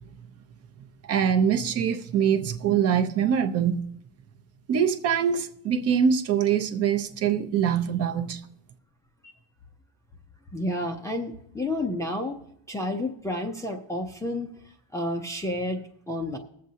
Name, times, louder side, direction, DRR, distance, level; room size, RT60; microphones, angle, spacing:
voice 1, 1.1-3.9 4.7-8.4, right 8 dB, 35° right, 0.7 m, -24 dB
voice 2, 10.5-12.4 12.7-16.4, left 1 dB, 5° left, 0.5 m, -31 dB
21.0 x 7.6 x 2.8 m
cardioid pair, 160°, 45 cm